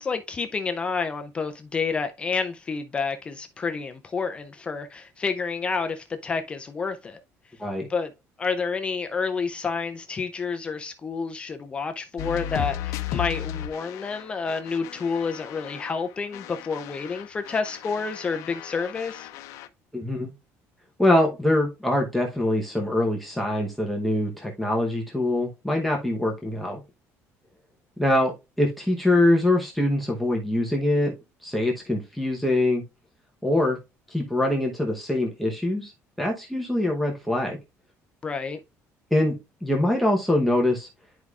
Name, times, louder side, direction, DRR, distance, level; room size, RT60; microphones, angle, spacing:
voice 1, 0.0-7.2 7.9-8.1 8.4-19.3 38.2-38.6, left 5 dB, 20° left, 0.4 m, -29 dB
sound 1, 12.2-16.0 16.3-19.7, left 12 dB, 70° left, 0.6 m, -35 dB
voice 2, 19.9-20.3 21.0-26.8 28.0-31.1 31.4-32.8 33.4-33.8 34.1-35.9 36.2-37.6 39.1-39.4 39.6-40.9, left 1 dB, ahead, 0.9 m, -23 dB
10.5 x 4.7 x 2.4 m
cardioid pair, 175°, 6 cm